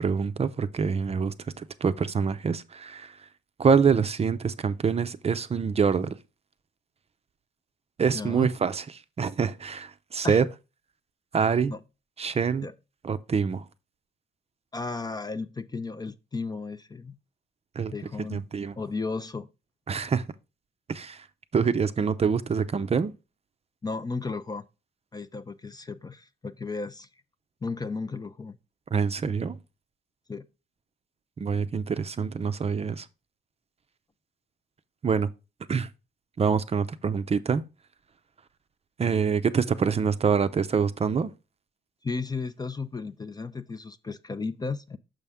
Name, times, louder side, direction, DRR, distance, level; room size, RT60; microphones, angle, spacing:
voice 1, 0.0-3.2 3.6-6.2 8.0-8.8 9.2-10.5 11.3-11.7 12.2-12.7 13.0-13.6 17.8-17.9 18.3-18.8 19.9-20.2 20.9-21.2 21.5-23.1 28.9-29.6 31.4-33.1 35.0-35.3 35.7-35.9 36.4-37.6 39.0-41.3, right 6 dB, 30° right, 0.5 m, -25 dB
voice 2, 8.1-8.5 10.2-10.4 11.7-11.8 12.6-12.7 14.7-17.2 17.9-18.5 18.8-19.5 23.8-24.7 25.1-27.1 27.6-28.6 30.3-30.5 42.0-45.0, left 4 dB, 20° left, 0.4 m, -34 dB
6.3 x 5.6 x 3.5 m
cardioid pair, 90°, 20 cm